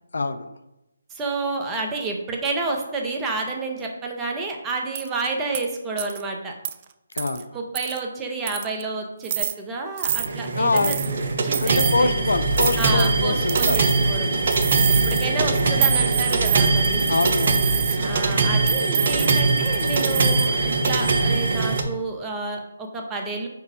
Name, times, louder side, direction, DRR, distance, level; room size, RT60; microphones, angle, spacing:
voice 1, 0.1-0.5 7.1-7.5 10.6-11.0 11.6-13.8 14.2-14.5 17.1-17.7, left 3 dB, 70° left, 11 dB, 0.5 m, -24 dB
voice 2, 1.1-6.5 7.5-10.9 11.4-12.2 12.8-14.3 15.0-17.1 18.0-23.5, right 3 dB, 15° right, 1 dB, 0.9 m, -30 dB
sound 1, 4.9-5.1 5.5-5.7 6.0-6.2 6.6-6.7 7.2-7.4 7.8-8.0 8.5-8.8 9.2-9.5 10.0-10.3 10.8-11.1 11.5-12.0 12.5-13.1 13.5-14.1 14.5-15.3 15.8-18.0 18.7-20.5 20.8-21.2, right 10 dB, 35° right, 0.4 m, -27 dB
sound 2, 10.1-21.8, right 3 dB, 50° right, 0.8 m, -22 dB
4.7 x 4.6 x 5.0 m, 0.93 s
figure-of-eight pair, 145°, 0 cm